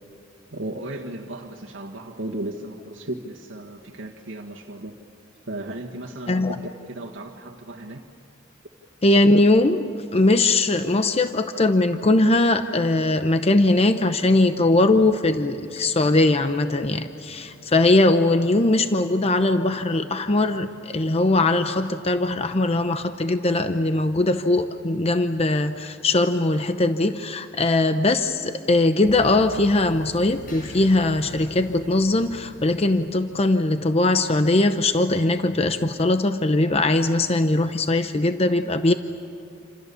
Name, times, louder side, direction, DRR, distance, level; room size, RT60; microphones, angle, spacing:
voice 1, 0.5-4.9 5.5-6.6 6.9-8.0, right 1 dB, 80° right, -1 dB, 1.7 m, -35 dB
voice 2, 9.0-9.9 10.1-38.9, left 2 dB, 30° left, 8 dB, 0.8 m, -20 dB
Engine / Mechanisms, 14.5-23.5, left 1 dB, 80° left, 5.0 m, -49 dB
sound 1, 29.0-34.2, left 3 dB, 50° left, 5.9 m, -43 dB
28.0 x 26.5 x 7.0 m, 2.6 s
head